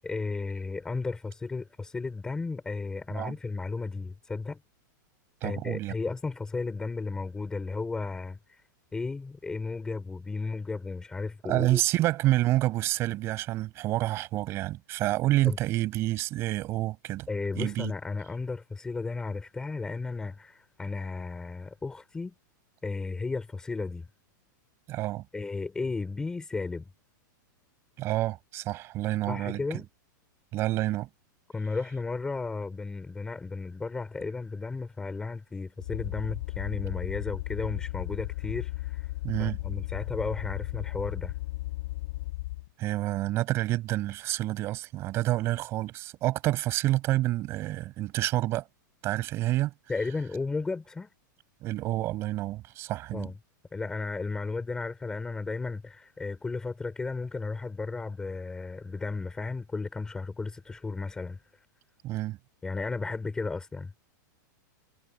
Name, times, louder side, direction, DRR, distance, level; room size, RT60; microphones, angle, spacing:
voice 1, 0.0-4.6 5.4-8.6 8.9-11.8 15.4-15.6 17.3-22.3 22.8-24.1 25.3-26.9 29.3-29.9 31.5-39.1 39.4-41.3 49.9-51.1 53.1-53.3 53.7-61.7 62.6-63.9, left 3 dB, 5° left, 3.6 m, -34 dB
voice 2, 5.4-5.9 11.5-17.3 17.5-17.9 24.9-25.2 28.0-29.6 30.5-31.1 39.2-39.6 42.8-48.6 49.0-49.7 51.6-53.3 62.0-62.4, right 16 dB, 25° right, 6.4 m, -28 dB
sound 1, 35.8-42.7, left 18 dB, 45° left, 3.9 m, -35 dB
supercardioid pair, 180°, 11 cm